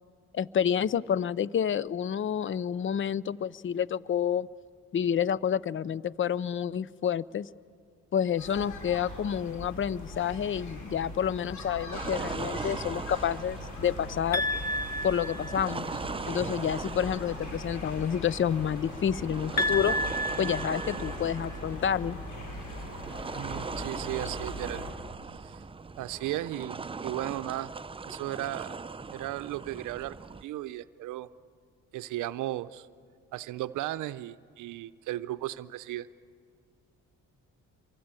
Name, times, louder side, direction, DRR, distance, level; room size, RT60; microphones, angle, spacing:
voice 1, 0.3-4.5 4.9-7.5 8.1-14.5 15.0-16.0 16.3-20.0 20.4-22.2, left 8 dB, 40° left, 20 dB, 0.6 m, -29 dB
sound 1, 8.4-24.9, left 1 dB, 75° left, 7.7 m, -41 dB
sound 2, 11.9-30.4, right 4 dB, 20° right, 0.6 m, -40 dB
sound 3, 14.3-16.0 19.6-21.6, left 1 dB, 60° left, 1.6 m, -31 dB
voice 2, 23.4-25.0 25.4-25.6 26.0-27.7 28.1-28.8 29.1-30.2 30.4-31.3 31.9-32.9 33.3-36.1, right 15 dB, 85° right, 13 dB, 0.6 m, -35 dB
25.0 x 23.5 x 9.0 m, 2.1 s
cardioid pair, 90°, 30 cm